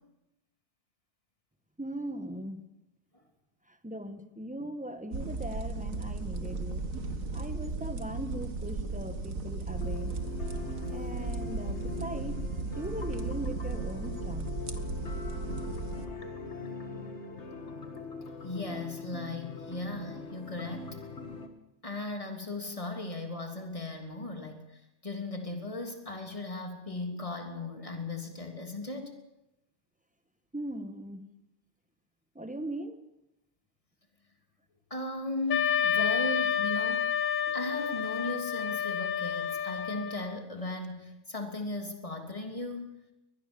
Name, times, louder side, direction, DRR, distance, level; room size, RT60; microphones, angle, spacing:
voice 1, 1.8-2.6 3.8-6.8 7.3-10.1 10.9-12.4 12.8-14.5 30.5-31.2 32.3-33.0 37.5-37.6, right 1 dB, 5° right, 9 dB, 1.6 m, -39 dB
sound 1, 5.1-16.1, right 3 dB, 90° right, 2.1 m, -35 dB
sound 2, 9.7-21.5, left 4 dB, 60° left, 2.1 m, -42 dB
voice 2, 18.4-21.0 21.8-24.7 25.0-29.1 34.9-37.1 37.5-42.9, left 2 dB, 25° left, 4 dB, 3.2 m, -37 dB
Wind instrument woodwind instrument, 35.5-40.4, left 8 dB, 90° left, 1.4 m, -29 dB
23.0 x 20.0 x 7.1 m, 0.92 s
omnidirectional pair, 1.3 m